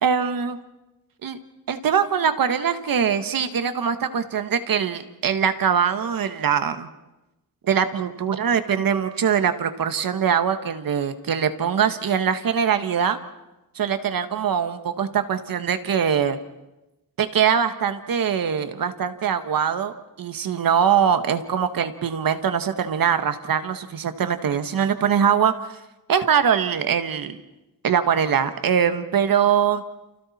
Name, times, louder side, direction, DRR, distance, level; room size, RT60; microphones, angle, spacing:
voice 1, 0.0-0.6 1.2-1.4 1.7-6.9 7.6-13.2 13.7-16.4 17.2-19.9 20.2-25.5 26.1-27.4 27.8-29.8, right 7 dB, 75° right, 9 dB, 1.6 m, -22 dB
30.0 x 29.5 x 4.3 m, 0.99 s
wide cardioid pair, 160°, 35 cm